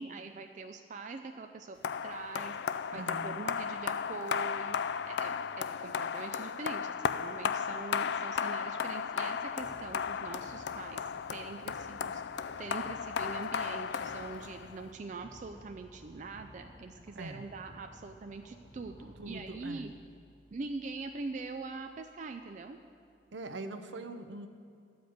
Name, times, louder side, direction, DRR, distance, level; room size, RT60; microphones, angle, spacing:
voice 1, 0.0-19.9 20.5-22.8, right 3 dB, 40° right, 6 dB, 0.4 m, -43 dB
sound 1, 1.8-14.9, left 7 dB, 60° left, 0.3 m, -35 dB
voice 2, 2.9-3.4 17.2-17.4 19.2-19.9 23.3-24.5, right 2 dB, 70° right, 8 dB, 0.7 m, -42 dB
sound 2, 9.6-23.4, equal, 10° left, 1.9 m, -57 dB
12.0 x 5.1 x 7.9 m, 2.3 s
head